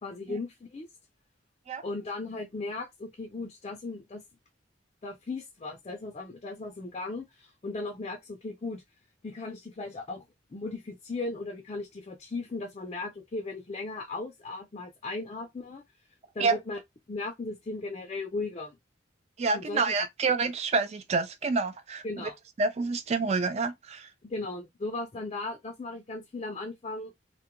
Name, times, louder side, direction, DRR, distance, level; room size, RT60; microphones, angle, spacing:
voice 1, 0.0-0.9 1.8-4.2 5.0-8.8 9.2-10.3 10.5-15.8 16.3-16.8 17.1-18.8 19.5-19.9 22.0-22.4 24.2-27.1, left 3 dB, 35° left, 0.4 m, -37 dB
voice 2, 19.4-22.3 22.6-24.1, right 4 dB, 35° right, 0.3 m, -28 dB
2.3 x 2.1 x 2.9 m
head